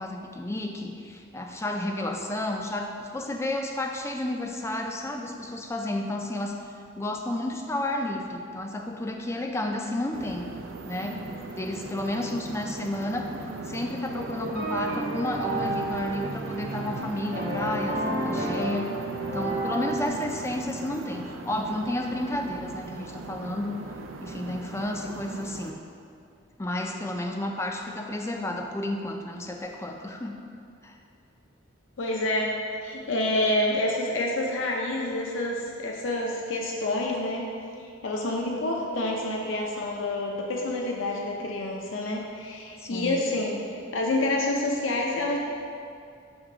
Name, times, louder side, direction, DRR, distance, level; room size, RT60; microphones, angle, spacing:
voice 1, 0.0-6.6 7.0-10.5 10.8-13.3 13.6-18.9 19.3-23.8 24.2-25.8 26.6-30.3 30.8-31.0 42.8-43.2, left 1 dB, 15° left, 3 dB, 0.3 m, -31 dB
sound 1, 10.1-25.7, right 3 dB, 80° right, 0.4 m, -38 dB
sound 2, 14.1-20.1, right 1 dB, 45° right, 1.1 m, -31 dB
voice 2, 32.0-32.6 32.8-37.5 37.8-45.4, left 1 dB, 75° left, 0 dB, 0.6 m, -28 dB
6.1 x 3.6 x 4.9 m, 2.4 s
head